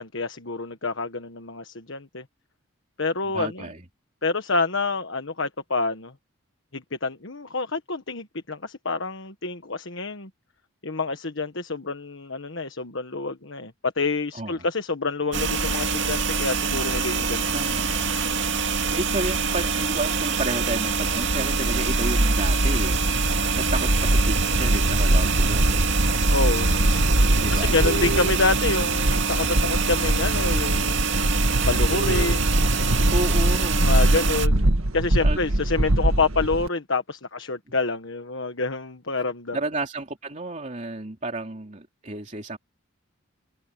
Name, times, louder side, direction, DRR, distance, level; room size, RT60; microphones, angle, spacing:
voice 1, 0.0-2.2 3.0-3.7 4.2-6.1 6.7-10.3 10.8-17.6 26.3-26.7 27.5-31.0 31.7-32.7 33.8-39.6, left 3 dB, 65° left, 1.4 m, -27 dB
voice 2, 3.3-3.9 14.3-14.6 17.5-17.9 18.9-26.0 27.4-27.8 33.1-33.9 35.2-35.4 39.5-42.6, right 2 dB, 35° right, 3.1 m, -32 dB
sound 1, 15.3-34.5, right 5 dB, 55° right, 2.6 m, -25 dB
sound 2, 20.7-36.7, right 1 dB, 85° right, 1.7 m, -23 dB
head